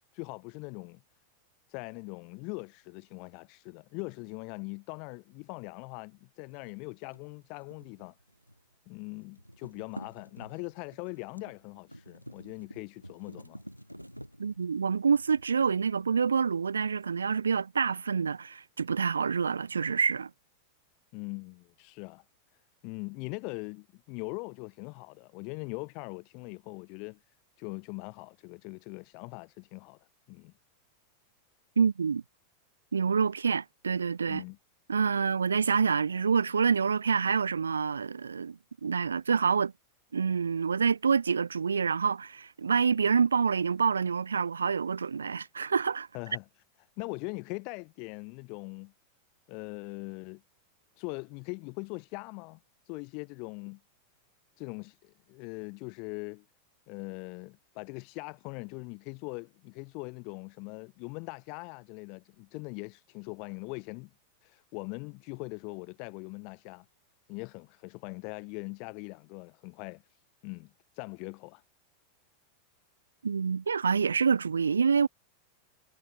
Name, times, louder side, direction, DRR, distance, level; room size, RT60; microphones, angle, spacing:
voice 1, 0.1-1.0 1.7-8.2 8.9-13.6 21.1-22.2 22.8-27.2 27.6-30.5 34.3-34.6 46.1-46.4 47.0-48.9 49.5-50.4 51.0-52.6 52.9-53.8 54.6-56.4 56.9-64.1 64.4-66.8 67.3-70.0 70.4-71.6, left 33 dB, 45° left, 3.1 m, -41 dB
sound 1, 6.5-8.7 9.0-16.3, equal, 90° right, 5.6 m, -50 dB
voice 2, 14.4-20.3 31.8-32.2 32.9-34.4 34.9-39.7 40.1-46.1 73.2-75.1, right 6 dB, 75° right, 0.5 m, -27 dB
figure-of-eight pair, 90°, 0 cm